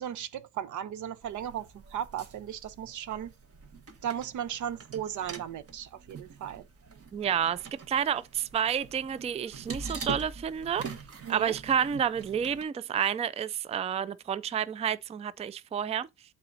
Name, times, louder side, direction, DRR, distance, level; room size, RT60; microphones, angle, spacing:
voice 1, 0.0-3.3 4.0-6.6 11.2-11.5, right 10 dB, 75° right, 0.9 m, -36 dB
sound 1, 1.2-12.6, right 5 dB, 50° right, 1.5 m, -44 dB
voice 2, 7.1-10.8 11.3-16.1, right 8 dB, 20° right, 0.4 m, -30 dB
11.5 x 4.0 x 2.7 m
cardioid pair, 90°, 30 cm